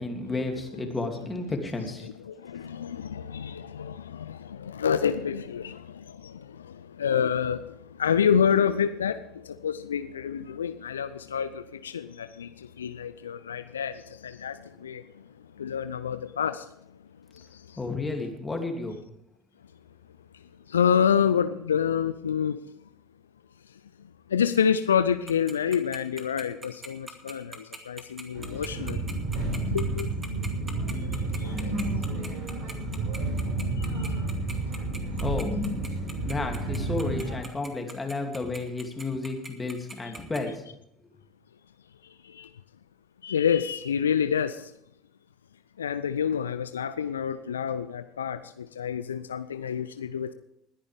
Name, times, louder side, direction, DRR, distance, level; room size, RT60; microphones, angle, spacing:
voice 1, 0.0-2.1 17.8-19.0 35.2-35.5 36.2-40.6, left 3 dB, 15° left, 2.8 m, -32 dB
voice 2, 1.8-7.7 8.0-15.0 15.6-16.6 17.4-17.5 20.7-22.6 24.3-29.0 29.7-30.1 31.4-31.6 42.2-42.5 43.2-44.7 45.8-50.3, left 7 dB, 80° left, 0.5 m, -28 dB
Tick-tock, 25.3-40.4, right 3 dB, 20° right, 2.3 m, -41 dB
sound 1, 28.3-37.4, right 2 dB, 60° right, 5.2 m, -30 dB
20.5 x 10.0 x 3.5 m
figure-of-eight pair, 65°, 0 cm